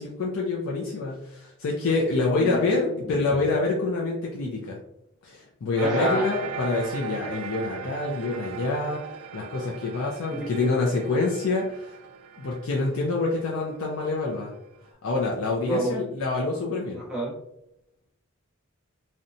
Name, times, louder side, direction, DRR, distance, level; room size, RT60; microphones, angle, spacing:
voice 1, 0.0-4.8 5.2-12.0 12.4-14.5 15.0-17.0, left 3 dB, 70° left, -3 dB, 0.4 m, -26 dB
voice 2, 2.4-3.1 5.8-6.3 8.5-8.6 10.3-10.4 15.6-16.1 16.9-17.3, right 1 dB, 5° right, -5 dB, 0.7 m, -29 dB
sound 1, 5.7-14.8, right 7 dB, 85° right, 0.3 m, -39 dB
2.7 x 2.1 x 2.6 m, 0.82 s
head